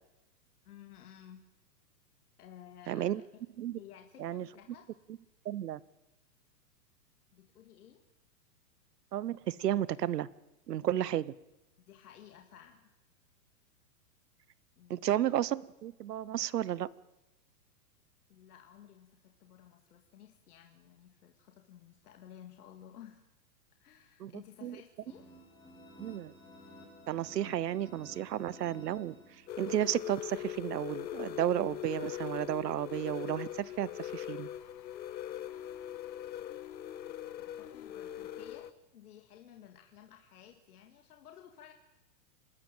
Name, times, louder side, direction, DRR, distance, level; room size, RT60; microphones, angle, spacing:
voice 1, 0.6-1.4 2.4-3.2 3.7-4.9 7.3-8.0 11.9-12.9 14.8-15.1 18.3-23.2 23.8-25.3 37.4-41.7, left 10 dB, 65° left, 4 dB, 2.1 m, -55 dB
voice 2, 2.9-3.2 3.6-3.8 4.2-4.5 5.4-5.8 9.1-10.3 10.7-11.3 14.9-16.9 24.2-24.3 24.6-24.8 26.0-26.3 27.1-34.5, right 12 dB, 70° right, 21 dB, 1.0 m, -33 dB
sound 1, 25.1-29.8, left 1 dB, 10° left, 2.4 m, -54 dB
sound 2, 29.5-38.7, left 11 dB, 85° left, 1.1 m, -41 dB
27.5 x 13.0 x 9.1 m, 0.99 s
hypercardioid pair, 175°, 50 cm